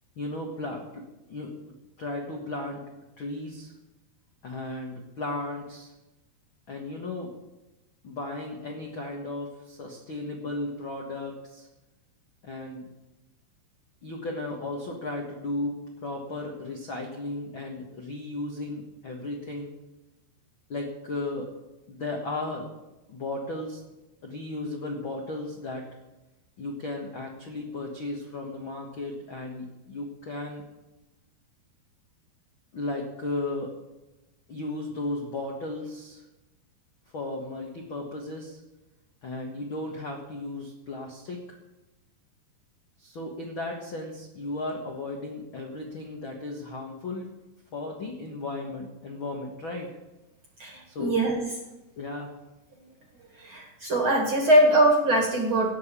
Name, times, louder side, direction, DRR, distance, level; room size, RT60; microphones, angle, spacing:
voice 1, 0.2-1.0 1.3-1.6 2.0-2.8 3.2-3.7 4.4-5.9 6.7-7.3 8.0-11.7 12.4-12.8 14.0-19.7 20.7-21.5 21.9-22.7 23.1-23.8 24.2-25.9 26.6-30.6 32.7-33.7 34.5-36.2 37.1-38.6 39.2-41.6 43.0-47.3 47.7-49.9 50.9-51.2 52.0-52.3, left 2 dB, 60° left, 0 dB, 1.3 m, -35 dB
voice 2, 50.6-51.4 53.4-55.7, right 1 dB, 40° right, 0 dB, 2.1 m, -22 dB
18.0 x 6.2 x 8.7 m, 1.0 s
omnidirectional pair, 4.8 m